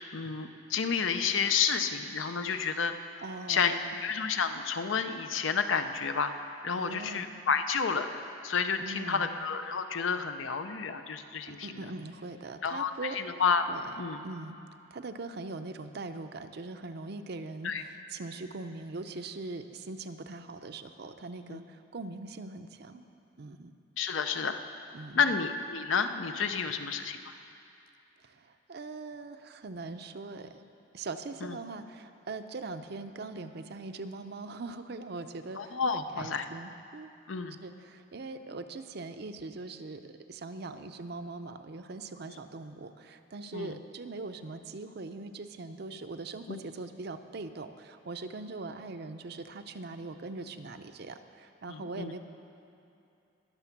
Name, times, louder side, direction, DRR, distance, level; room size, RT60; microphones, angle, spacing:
voice 1, 0.1-2.9 3.5-3.7 4.0-11.8 12.6-13.7 14.0-14.2 17.6-17.8 21.5-21.6 24.0-24.6 25.1-27.3 31.4-31.6 35.6-36.5 37.3-37.6 43.5-43.8 46.5-46.6 51.7-52.1, left 6 dB, 90° left, 8 dB, 0.7 m, -30 dB
voice 2, 2.4-2.8 3.2-4.0 6.7-7.3 8.8-9.4 11.5-13.2 13.7-14.0 14.2-14.6 14.9-23.1 23.4-23.7 24.9-25.4 28.2-30.5 30.9-37.1 37.6-52.2, right 3 dB, 55° right, 8 dB, 0.6 m, -41 dB
20.5 x 6.9 x 5.9 m, 2.7 s
head